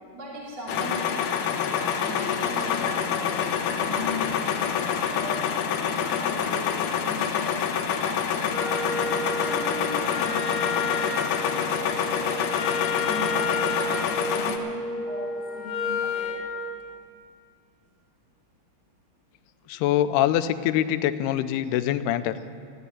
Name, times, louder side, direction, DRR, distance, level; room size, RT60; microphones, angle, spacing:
voice 1, 0.1-1.2 1.9-9.1 9.3-12.6 12.9-16.4, equal, 25° right, -5 dB, 2.6 m, -39 dB
sound 1, 0.7-14.6, left 7 dB, 70° left, 2.1 m, -27 dB
Wind instrument woodwind instrument, 8.5-16.5, left 3 dB, 50° left, 2.7 m, -30 dB
voice 2, 19.7-22.4, left 12 dB, 90° left, 12 dB, 2.6 m, -24 dB
14.5 x 10.0 x 9.5 m, 2.4 s
omnidirectional pair, 4.6 m